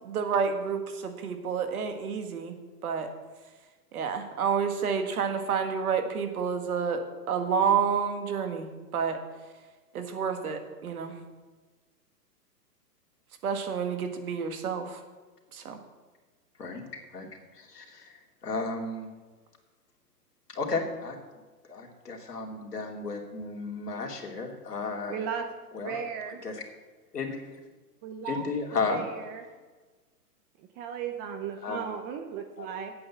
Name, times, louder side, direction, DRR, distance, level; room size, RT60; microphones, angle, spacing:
voice 1, 0.0-2.5 2.8-3.1 3.9-8.7 8.9-9.2 9.9-11.1 13.4-15.0 15.5-15.8, right 6 dB, 65° right, 6 dB, 1.9 m, -29 dB
voice 2, 16.6-19.1 20.5-21.2 21.7-25.2 25.7-26.0 26.4-26.6 27.1-27.6 28.2-29.0 31.6-31.8 32.6-32.7, left 4 dB, 75° left, 1 dB, 2.7 m, -34 dB
voice 3, 25.1-25.5 25.8-26.4 28.0-28.5 28.9-29.4 30.6-32.9, right 7 dB, 20° right, 6 dB, 0.6 m, -36 dB
8.8 x 8.5 x 7.3 m, 1.3 s
hypercardioid pair, 120°, 48 cm